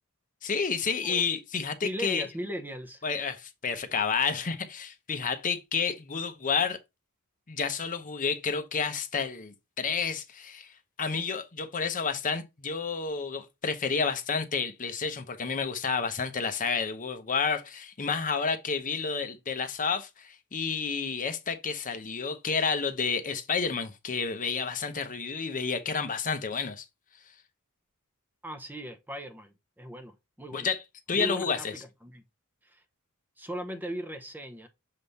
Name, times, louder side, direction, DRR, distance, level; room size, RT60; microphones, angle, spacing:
voice 1, 0.4-2.3 3.0-6.8 7.5-10.7 11.0-26.8 30.5-30.8 31.1-31.7, left 5 dB, 35° left, 0.7 m, -30 dB
voice 2, 1.8-3.1 28.4-30.7 31.1-31.7 32.0-32.2 32.6-32.8 33.4-34.7, equal, 10° right, 0.7 m, -38 dB
6.7 x 3.5 x 4.0 m
head